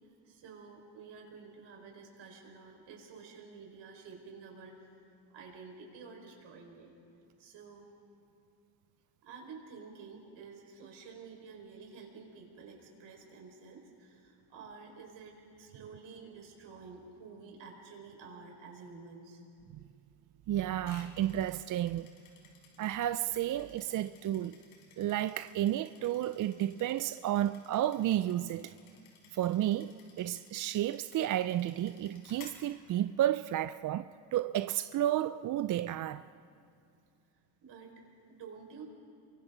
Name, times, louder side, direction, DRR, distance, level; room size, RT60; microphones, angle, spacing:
voice 1, 0.2-4.8 5.3-6.9 7.4-7.9 9.2-19.4 37.6-37.9 38.3-38.8, right 5 dB, 65° right, 5.2 m, -50 dB
voice 2, 20.5-22.1 22.8-24.6 25.0-28.7 29.3-36.2, right 12 dB, 40° right, 0.4 m, -32 dB
sound 1, 20.8-33.5, left 5 dB, 80° left, 5.0 m, -58 dB
29.5 x 24.0 x 3.9 m
cardioid pair, 100°, 49 cm